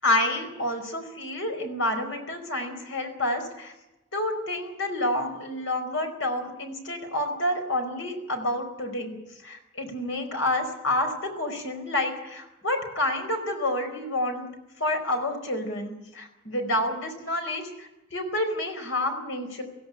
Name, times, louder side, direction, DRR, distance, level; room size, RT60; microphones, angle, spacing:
voice 1, 0.0-3.7 4.1-9.2 9.4-14.5 14.8-19.6, left 1 dB, 70° left, 5 dB, 4.8 m, -29 dB
17.5 x 16.0 x 10.0 m, 0.97 s
head